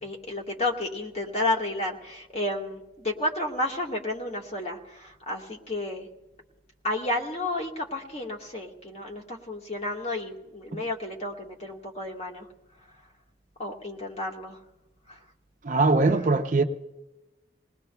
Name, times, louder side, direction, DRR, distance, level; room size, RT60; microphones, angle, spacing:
voice 1, 0.0-6.1 6.8-12.5 13.6-14.6 15.1-15.2, left 1 dB, 35° left, 1.5 m, -31 dB
voice 2, 15.6-16.6, right 3 dB, 45° right, 0.6 m, -22 dB
27.5 x 19.5 x 2.2 m
head